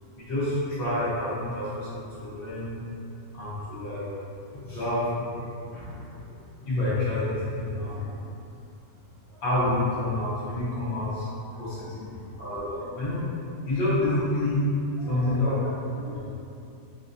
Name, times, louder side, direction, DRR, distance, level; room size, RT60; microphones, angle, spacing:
voice 1, 0.1-2.7 3.3-4.0 4.5-5.5 6.7-8.0 9.4-11.3 11.6-12.1 12.4-13.2 13.6-14.6 15.1-15.5 16.0-16.2, left 1 dB, 50° left, -12 dB, 1.2 m, -28 dB
voice 2, 5.7-6.3 7.7-8.2 9.3-9.4 10.6-10.7 11.7-12.0 14.0-14.1 15.0-16.2, left 1 dB, 85° left, -14 dB, 1.2 m, -45 dB
5.0 x 3.1 x 2.7 m, 2.6 s
omnidirectional pair, 4.0 m